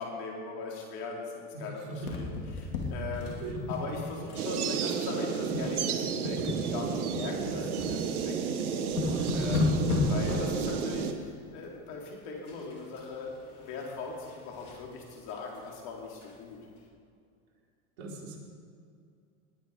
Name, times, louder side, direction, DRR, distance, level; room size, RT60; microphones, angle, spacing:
voice 1, 0.0-3.4 3.7-8.8 9.3-9.8 10.1-16.6, left 4 dB, 55° left, -1 dB, 4.3 m, -40 dB
voice 2, 1.5-2.1 2.8-2.9 3.2-3.6 9.6-9.9 18.0-18.4, right 3 dB, 65° right, -1 dB, 3.9 m, -41 dB
sound 1, 2.0-4.4 4.7-4.9 5.4-5.7 6.0-7.9 8.4-8.5 8.8-10.6 12.5-13.0 13.4-14.8 15.3-15.4 15.7-15.8 16.2-16.3, left 2 dB, 90° left, 2.7 m, -33 dB
sound 2, 4.4-11.1, right 6 dB, 80° right, 1.3 m, -32 dB
19.5 x 9.7 x 5.3 m, 2.3 s
hypercardioid pair, 95°, 43 cm